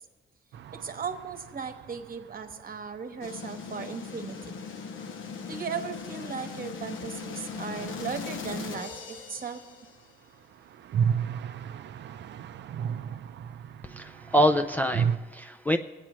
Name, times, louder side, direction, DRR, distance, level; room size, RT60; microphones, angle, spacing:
sound 1, 0.5-4.3 4.6-4.7 4.9-5.0 10.0-15.2, right 7 dB, 60° right, 0.5 m, -34 dB
voice 1, 0.7-4.5 5.5-9.6, right 6 dB, 45° right, 6 dB, 1.1 m, -37 dB
sound 2, 3.2-10.1, left 5 dB, 75° left, 0.9 m, -39 dB
voice 2, 13.8-15.8, equal, 10° left, 5 dB, 0.4 m, -25 dB
20.0 x 8.6 x 3.1 m, 1.3 s
cardioid pair, 90°, 20 cm